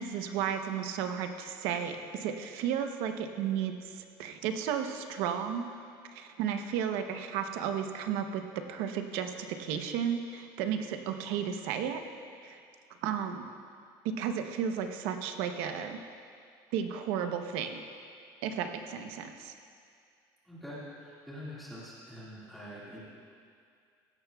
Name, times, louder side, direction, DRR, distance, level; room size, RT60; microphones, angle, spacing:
voice 1, 0.0-5.7 6.1-12.0 12.4-12.6 13.0-13.5 14.0-16.0 16.7-17.8 18.4-19.5, right 8 dB, 85° right, 6 dB, 0.8 m, -33 dB
voice 2, 20.5-23.0, equal, ahead, -9 dB, 1.9 m, -45 dB
16.0 x 11.5 x 2.3 m, 2.3 s
cardioid pair, 175°, 9 cm